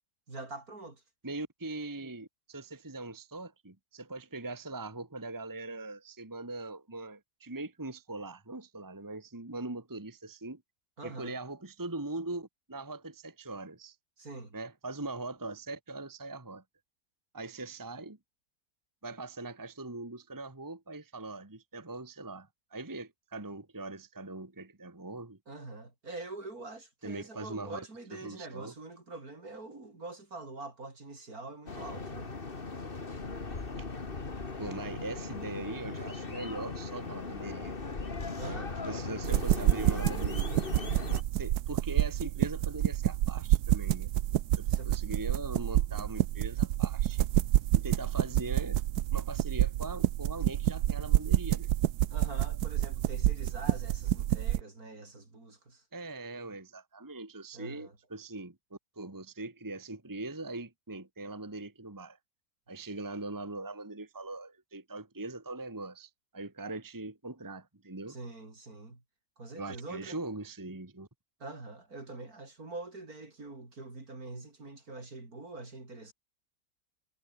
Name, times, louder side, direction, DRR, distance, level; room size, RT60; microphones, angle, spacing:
voice 1, 0.3-1.0 11.0-11.3 14.2-14.6 25.5-32.3 38.4-38.9 44.7-44.9 52.1-55.8 57.5-58.0 68.1-69.0 69.4-70.2 71.4-76.1, right 2 dB, 65° right, 5.2 m, -44 dB
voice 2, 1.2-10.6 11.0-13.9 14.5-16.6 17.3-18.2 19.0-25.4 27.0-27.8 28.2-28.7 33.8-33.9 34.6-37.7 38.4-38.6 38.9-40.6 41.3-44.1 44.6-47.3 47.7-48.8 49.1-51.7 55.9-62.2 62.7-68.2 69.6-71.1, right 2 dB, 15° right, 1.5 m, -41 dB
sound 1, 31.7-41.2, left 3 dB, 35° left, 2.2 m, -38 dB
sound 2, 39.2-54.6, right 13 dB, 80° right, 1.2 m, -28 dB
omnidirectional pair, 1.7 m